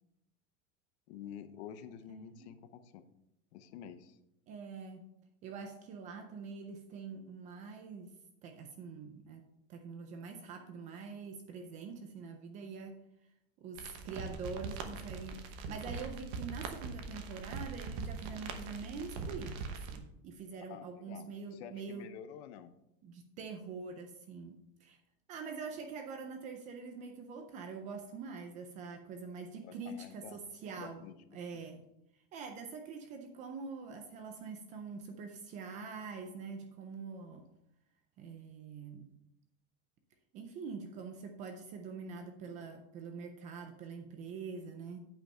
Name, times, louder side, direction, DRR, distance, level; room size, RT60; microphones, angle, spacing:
voice 1, 1.1-3.0 3.5-4.2 20.7-22.7 29.6-30.4 30.8-31.1 31.5-31.6, left 9 dB, 60° left, 11 dB, 0.8 m, -49 dB
voice 2, 2.1-2.5 4.5-5.0 5.4-8.1 8.4-9.4 9.7-13.0 13.6-22.1 23.0-25.0 25.3-31.0 31.3-31.8 32.3-37.4 38.2-39.1 40.3-45.0, right 5 dB, 20° right, 5 dB, 0.4 m, -45 dB
sound 1, 13.8-20.0, right 4 dB, 40° right, 1.0 m, -42 dB
9.0 x 5.3 x 5.5 m, 0.81 s
supercardioid pair, 175°, 37 cm